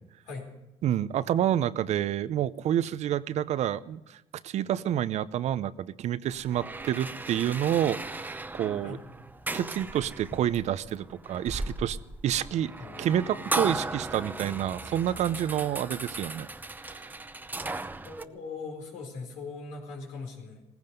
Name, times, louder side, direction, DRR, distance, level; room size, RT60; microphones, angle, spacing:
voice 1, 0.8-9.0 9.5-12.0 12.2-12.7 13.0-16.5 16.9-17.0, right 11 dB, 60° right, 16 dB, 0.6 m, -28 dB
sound 1, 6.3-18.2, right 2 dB, 15° right, 0.7 m, -37 dB
voice 2, 12.8-13.5 17.7-20.6, left 4 dB, 90° left, 1 dB, 4.3 m, -41 dB
17.5 x 15.5 x 5.3 m, 0.91 s
cardioid pair, 90°, 13 cm